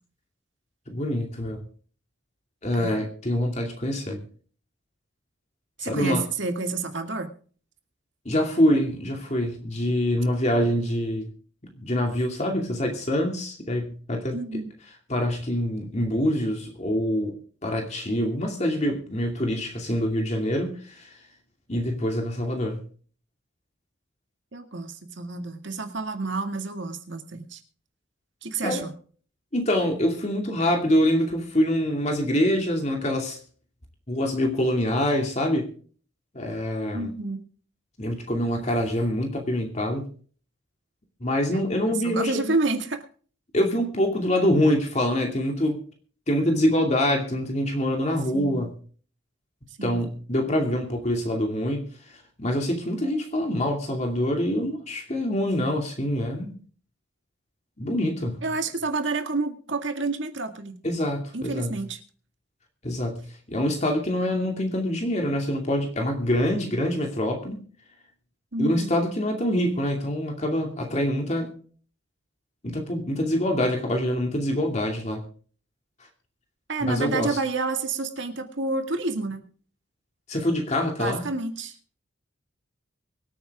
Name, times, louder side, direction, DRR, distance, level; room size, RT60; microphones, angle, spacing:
voice 1, 0.9-1.6 2.6-4.2 5.8-6.2 8.2-11.3 11.8-14.6 15.1-17.3 17.6-21.1 21.7-22.8 28.6-28.8 29.5-33.4 34.1-35.7 36.3-37.1 38.0-40.1 41.2-42.5 43.5-45.8 46.3-48.8 49.8-56.6 57.8-58.4 60.8-61.8 62.8-67.6 68.6-71.5 72.6-75.2 76.9-77.4 80.3-81.3, left 1 dB, 35° left, 2 dB, 2.5 m, -25 dB
voice 2, 5.8-7.3 14.3-14.7 24.5-27.6 28.4-28.9 36.9-37.4 41.5-41.6 41.9-43.0 48.3-48.6 49.8-50.0 58.4-60.7 61.3-62.0 68.5-68.9 76.7-79.4 81.0-81.8, right 3 dB, 65° right, 6 dB, 2.1 m, -29 dB
24.0 x 8.8 x 3.6 m, 0.43 s
head